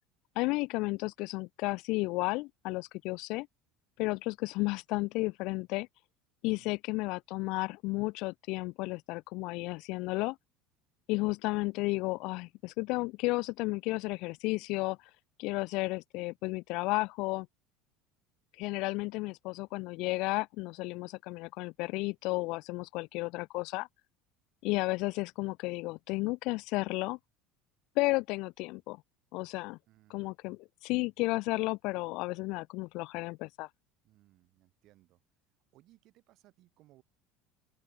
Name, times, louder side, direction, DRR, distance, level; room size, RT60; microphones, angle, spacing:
voice 1, 0.3-3.5 4.0-5.9 6.4-10.4 11.1-15.0 15.4-17.5 18.6-23.9 24.6-27.2 28.0-29.0 29.3-29.8 30.1-33.7, left 23 dB, 65° left, 1.0 m, -33 dB
voice 2, 29.9-30.3 34.0-35.2 35.7-37.0, right 17 dB, 55° right, 5.3 m, -63 dB
open air
supercardioid pair, 130°, 0 cm